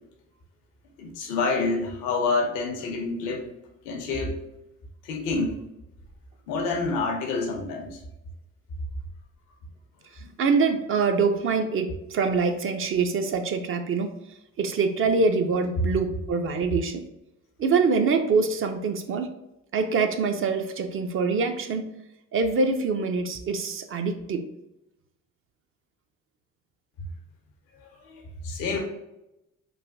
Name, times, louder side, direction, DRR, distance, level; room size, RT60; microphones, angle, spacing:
voice 1, 1.0-3.5 3.8-4.4 5.0-5.6 6.5-8.0 10.2-10.3 27.7-28.8, left 3 dB, 80° left, 2 dB, 0.7 m, -28 dB
voice 2, 10.4-14.1 14.6-17.0 17.6-19.3 19.7-21.9 22.3-24.4, right 4 dB, 40° right, 7 dB, 0.4 m, -24 dB
3.2 x 2.1 x 2.5 m, 0.89 s
hypercardioid pair, 60°, 34 cm